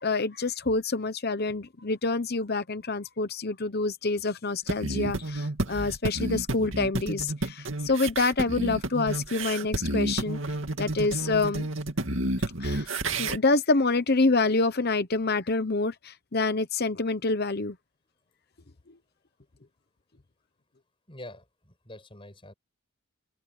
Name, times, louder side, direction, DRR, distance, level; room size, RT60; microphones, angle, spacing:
voice 1, 0.0-10.4 10.8-11.7 12.6-12.9 13.2-17.8, left 3 dB, 45° left, 0.9 m, -27 dB
sound 1, 4.7-13.4, right 2 dB, 60° right, 2.5 m, -30 dB
voice 2, 21.1-22.5, left 1 dB, 25° left, 6.7 m, -45 dB
open air
head